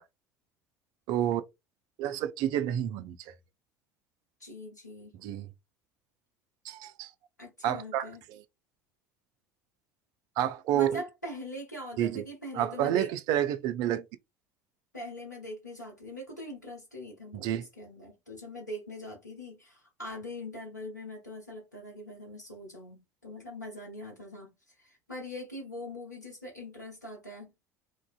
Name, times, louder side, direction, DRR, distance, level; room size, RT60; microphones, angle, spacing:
voice 1, 1.1-1.4 2.0-3.3 5.2-5.5 6.6-7.1 7.6-8.1 10.4-11.0 12.0-12.2 12.5-14.0 17.3-17.7, right 11 dB, 50° right, 0.3 m, -29 dB
voice 2, 4.4-5.1 7.4-8.2 10.7-13.1 14.9-27.5, left 1 dB, 90° left, 0.6 m, -42 dB
2.5 x 2.1 x 2.4 m
figure-of-eight pair, 65°, 9 cm